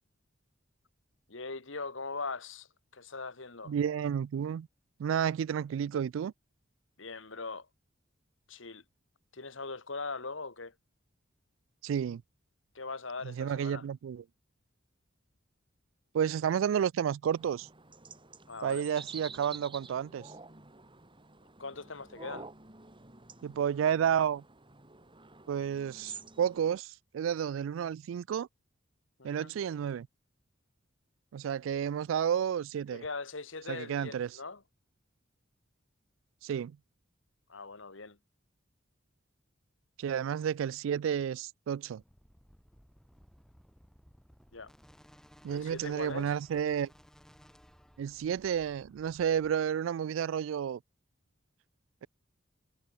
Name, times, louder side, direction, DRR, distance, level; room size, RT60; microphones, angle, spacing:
voice 1, 1.3-3.7 7.0-7.7 8.5-8.8 9.3-10.7 12.7-13.9 18.5-18.9 21.6-22.5 29.2-29.5 32.9-34.6 37.5-38.2 44.5-44.7 45.5-46.3, left 3 dB, 75° left, 2.1 m, -41 dB
voice 2, 3.7-4.7 5.0-6.3 11.8-12.2 13.2-14.2 16.1-17.7 18.6-20.3 23.4-24.4 25.5-28.5 29.2-30.1 31.3-33.0 33.7-34.3 36.4-36.7 40.0-42.0 45.4-46.9 48.0-50.8, right 8 dB, 80° right, 0.3 m, -31 dB
sound 1, 17.2-26.8, right 4 dB, 25° right, 5.4 m, -49 dB
sound 2, 42.0-49.5, equal, 5° left, 7.0 m, -60 dB
head